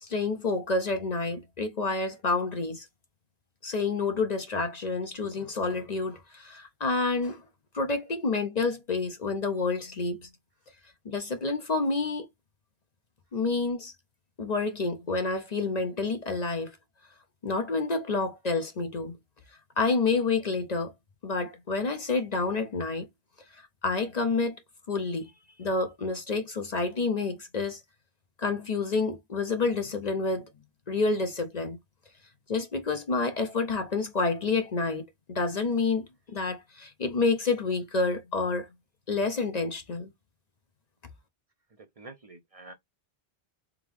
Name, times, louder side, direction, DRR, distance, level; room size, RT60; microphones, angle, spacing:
voice 1, 0.0-2.9 3.6-7.4 7.7-10.3 11.0-12.3 13.3-13.9 14.4-16.8 17.4-19.2 19.8-20.9 21.2-23.1 23.5-24.6 24.9-25.3 25.6-27.8 28.4-30.4 30.9-31.8 32.5-35.0 35.3-38.7 39.1-40.1, left 3 dB, 45° left, 0.7 m, -29 dB
voice 2, 41.8-42.7, right 2 dB, 40° right, 0.7 m, -47 dB
3.6 x 3.6 x 3.3 m
omnidirectional pair, 1.0 m